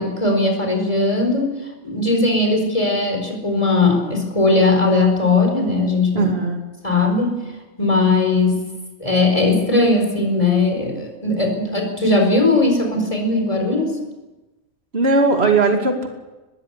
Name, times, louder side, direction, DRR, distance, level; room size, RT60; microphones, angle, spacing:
voice 1, 0.0-1.5 1.8-6.3 6.8-7.4 7.8-8.6 9.0-14.0, left 2 dB, 25° left, 3 dB, 4.7 m, -18 dB
voice 2, 6.1-6.6 14.9-16.1, right 3 dB, 50° right, 4 dB, 2.7 m, -18 dB
21.0 x 15.0 x 8.4 m, 1.1 s
omnidirectional pair, 1.3 m